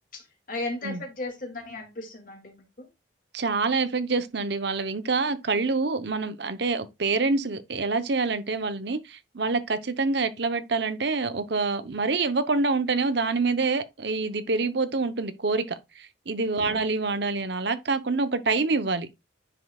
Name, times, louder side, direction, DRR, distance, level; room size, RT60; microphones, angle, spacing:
voice 1, 0.5-2.9 16.6-16.8, left 2 dB, 45° left, 2.1 m, -36 dB
voice 2, 3.3-15.6 16.0-19.1, right 3 dB, 60° right, 0.8 m, -26 dB
9.6 x 5.4 x 2.3 m
head